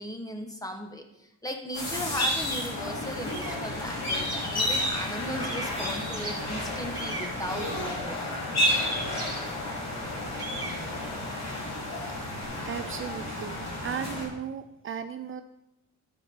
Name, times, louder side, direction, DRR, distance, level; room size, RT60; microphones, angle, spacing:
voice 1, 0.0-8.4, equal, 10° left, 4 dB, 1.5 m, -37 dB
sound 1, 1.7-14.2, left 1 dB, 60° left, 4.1 m, -31 dB
sound 2, 3.2-5.1 5.4-8.5 9.1-12.4, right 2 dB, 15° right, 2.3 m, -41 dB
voice 2, 12.6-15.4, right 8 dB, 45° right, 10 dB, 0.5 m, -36 dB
12.0 x 4.8 x 5.4 m, 0.87 s
cardioid pair, 90°, 30 cm